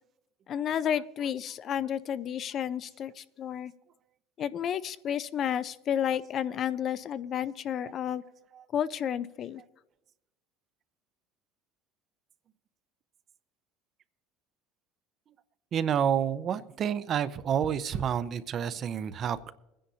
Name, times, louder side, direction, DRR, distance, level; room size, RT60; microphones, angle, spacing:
voice 1, 0.5-3.7 4.4-8.2 8.7-9.6, left 9 dB, 45° left, 15 dB, 0.4 m, -31 dB
voice 2, 15.7-19.5, right 8 dB, 45° right, 14 dB, 0.5 m, -29 dB
22.0 x 10.0 x 2.8 m, 0.92 s
supercardioid pair, 115°, 0 cm